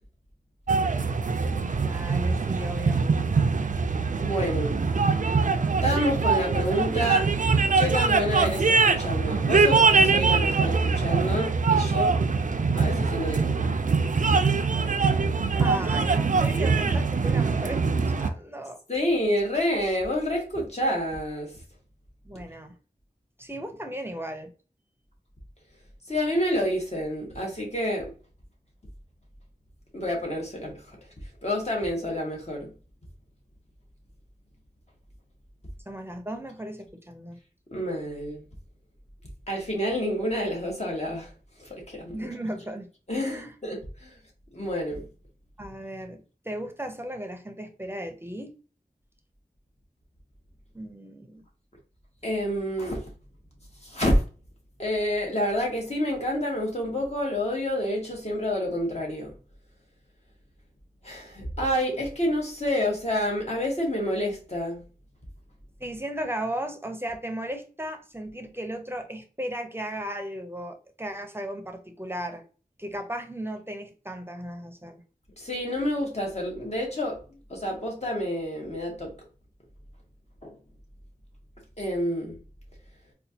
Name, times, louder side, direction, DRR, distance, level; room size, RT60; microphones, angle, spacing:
sound 1, 0.7-18.3, right 4 dB, 55° right, 0.4 m, -23 dB
voice 1, 1.8-3.1 15.6-17.8 18.2-18.8 22.2-22.7 23.4-24.5 35.9-37.4 42.1-42.9 43.2-43.5 45.6-48.5 50.7-51.4 65.8-72.4 72.8-75.0, right 1 dB, 15° right, 0.6 m, -35 dB
voice 2, 4.2-4.8 5.8-7.3 7.7-12.2 12.8-13.7 18.9-21.5 26.1-28.1 29.9-31.0 31.4-32.7 37.7-38.4 39.5-41.3 41.6-42.3 43.1-44.2 44.5-45.1 52.2-53.0 53.8-54.2 54.8-59.3 61.0-64.8 75.4-79.1 80.4-80.5 81.8-82.4, equal, 45° left, 1.3 m, -28 dB
4.2 x 2.3 x 2.7 m
wide cardioid pair, 55°, 16 cm